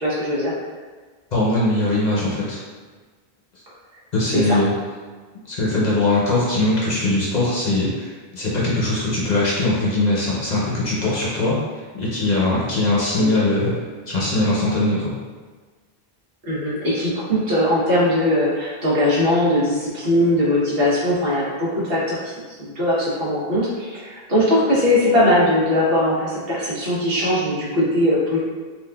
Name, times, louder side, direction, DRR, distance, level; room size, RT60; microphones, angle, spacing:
voice 1, 0.0-0.5 4.3-4.6 13.2-13.5 16.4-28.4, left 1 dB, 65° right, -8 dB, 1.1 m, -20 dB
voice 2, 1.3-2.6 4.1-4.7 5.5-11.6 11.9-13.8 14.1-15.1, left 2 dB, 50° left, -6 dB, 0.7 m, -21 dB
3.7 x 2.5 x 2.2 m, 1.4 s
omnidirectional pair, 1.0 m